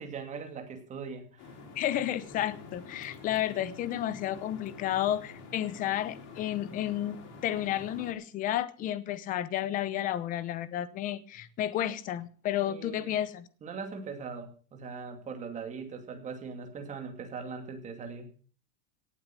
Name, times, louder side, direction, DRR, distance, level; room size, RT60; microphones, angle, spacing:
voice 1, 0.0-1.6 12.6-13.1 13.6-18.3, right 5 dB, 15° right, 2.5 m, -40 dB
sound 1, 1.4-8.1, left 4 dB, 35° left, 5.0 m, -48 dB
voice 2, 1.8-13.5, left 12 dB, 20° left, 0.8 m, -32 dB
18.0 x 8.5 x 7.5 m
supercardioid pair, 165°, 43 cm